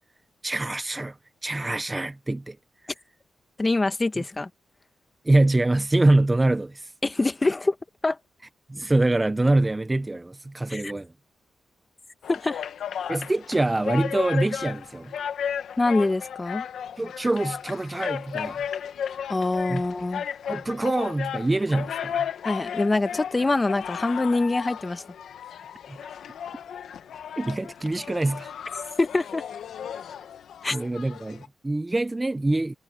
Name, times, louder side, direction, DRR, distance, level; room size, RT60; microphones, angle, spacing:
voice 1, 0.4-1.2 1.4-2.6 4.2-4.3 5.3-6.9 8.7-11.1 13.1-15.1 17.0-18.6 19.7-19.8 20.5-22.3 27.4-28.5 30.7-32.7, right 2 dB, 15° right, 0.5 m, -24 dB
voice 2, 3.6-4.5 7.0-7.7 8.0-8.2 10.7-10.9 12.3-12.6 15.8-16.6 19.3-20.2 22.4-25.0 29.0-29.4 30.6-30.8, left 2 dB, 20° left, 1.3 m, -24 dB
sound 1, 12.2-31.5, left 8 dB, 75° left, 1.0 m, -34 dB
wide cardioid pair, 120°, 0 cm